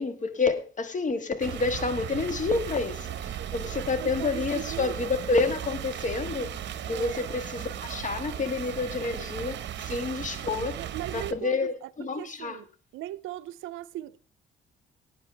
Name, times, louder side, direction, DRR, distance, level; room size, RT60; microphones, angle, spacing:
voice 1, 0.0-6.5 6.9-10.8 11.1-12.6, left 4 dB, 40° left, 1.7 m, -29 dB
sound 1, 1.4-11.3, right 10 dB, 65° right, 1.0 m, -36 dB
voice 2, 4.0-5.0 6.9-7.2 10.7-12.6 12.9-14.2, right 14 dB, 90° right, 0.6 m, -38 dB
18.5 x 9.3 x 3.3 m
cardioid pair, 90°, 20 cm